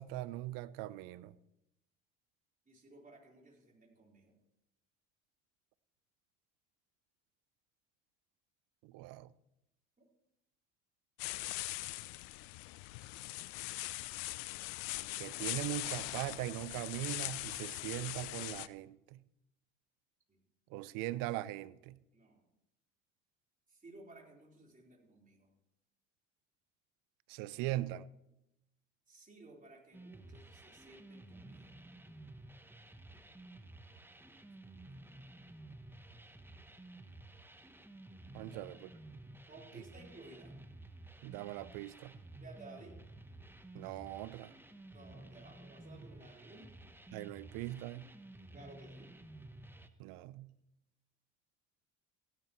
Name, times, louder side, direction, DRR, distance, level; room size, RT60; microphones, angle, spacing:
voice 1, 0.0-1.3 8.8-9.3 15.2-19.2 20.7-22.0 27.3-28.1 38.3-38.9 41.2-42.1 43.7-44.5 47.1-48.1 50.0-50.5, right 15 dB, 65° right, 18 dB, 0.7 m, -40 dB
voice 2, 2.7-4.3 20.3-20.4 22.1-22.4 23.7-25.5 29.1-31.7 38.5-38.7 39.5-40.5 42.4-43.0 44.9-46.7 48.5-49.1, right 2 dB, 20° right, -2 dB, 4.2 m, -56 dB
sound 1, 11.2-18.7, left 21 dB, 65° left, 0.6 m, -41 dB
sound 2, 29.9-49.9, right 2 dB, 5° right, 1.0 m, -53 dB
16.0 x 11.0 x 3.1 m, 0.85 s
hypercardioid pair, 70°, 37 cm